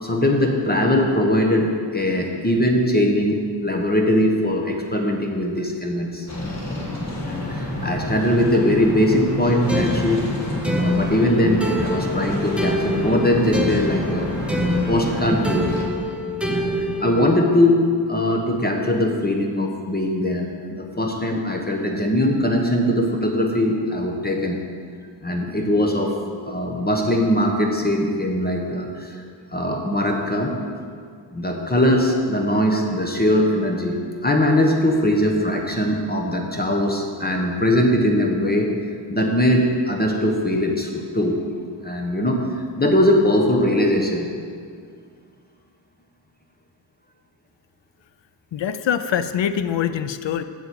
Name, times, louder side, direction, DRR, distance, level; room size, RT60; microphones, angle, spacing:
voice 1, 0.0-6.3 7.2-10.3 10.8-14.3 14.9-15.7 16.5-24.6 25.2-26.1 26.5-29.2 29.5-30.6 31.3-34.0 34.2-38.7 39.1-41.4 41.8-42.4 42.8-44.3, left 1 dB, 20° left, 1 dB, 1.1 m, -21 dB
sound 1, 6.3-15.8, left 1 dB, 40° left, 1.9 m, -29 dB
sound 2, 9.7-17.4, equal, 5° right, 0.8 m, -26 dB
voice 2, 48.5-50.4, left 9 dB, 80° left, 11 dB, 0.6 m, -24 dB
7.6 x 7.1 x 8.0 m, 2.2 s
wide cardioid pair, 135°, 44 cm